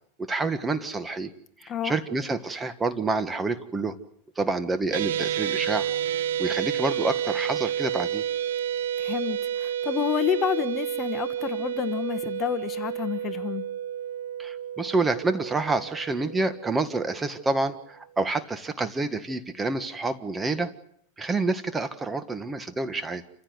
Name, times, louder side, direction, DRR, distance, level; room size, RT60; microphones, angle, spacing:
voice 1, 0.2-1.3 1.6-3.9 4.4-5.9 6.4-8.2 14.4-20.7 21.2-23.2, right 3 dB, 15° right, 10 dB, 1.6 m, -28 dB
voice 2, 1.7-2.0 9.0-13.6, left 9 dB, 30° left, 10 dB, 1.4 m, -29 dB
sound 1, 4.9-17.3, right 10 dB, 85° right, 1.1 m, -30 dB
28.5 x 15.5 x 8.1 m, 0.70 s
supercardioid pair, 130°, 0 cm